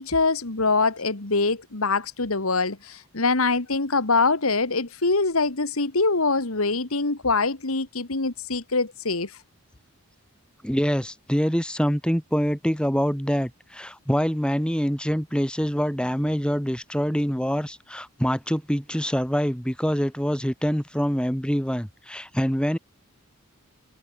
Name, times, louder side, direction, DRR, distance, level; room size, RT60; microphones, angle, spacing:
voice 1, 0.0-9.4, left 3 dB, 75° left, 2.0 m, -24 dB
voice 2, 10.6-22.8, equal, 5° left, 6.9 m, -25 dB
head